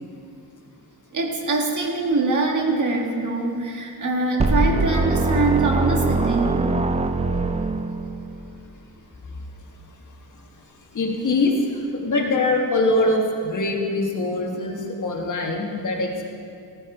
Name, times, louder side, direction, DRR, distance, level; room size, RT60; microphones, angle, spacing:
voice 1, 1.1-6.6, right 3 dB, 50° right, 1 dB, 1.6 m, -23 dB
sound 1, 4.4-8.4, right 3 dB, 20° right, 0.4 m, -22 dB
voice 2, 10.9-11.5 11.9-16.2, left 2 dB, 50° left, 1 dB, 1.5 m, -23 dB
15.5 x 9.8 x 4.9 m, 2.5 s
wide cardioid pair, 145°, 39 cm